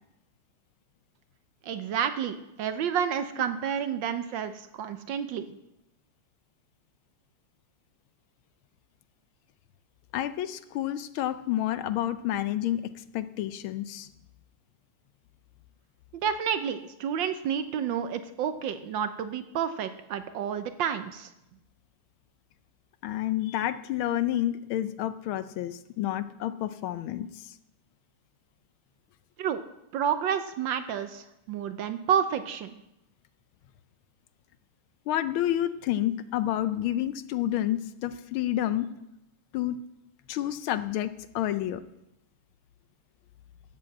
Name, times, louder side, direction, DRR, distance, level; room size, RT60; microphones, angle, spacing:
voice 1, 1.6-5.5 16.1-21.3 29.4-29.6 29.9-32.8, right 8 dB, 70° right, 10 dB, 1.2 m, -30 dB
voice 2, 10.1-14.1 23.0-27.5 35.1-38.9 39.5-39.8 40.3-41.8, left 12 dB, 75° left, 13 dB, 1.4 m, -29 dB
13.0 x 7.5 x 7.7 m, 0.89 s
omnidirectional pair, 2.4 m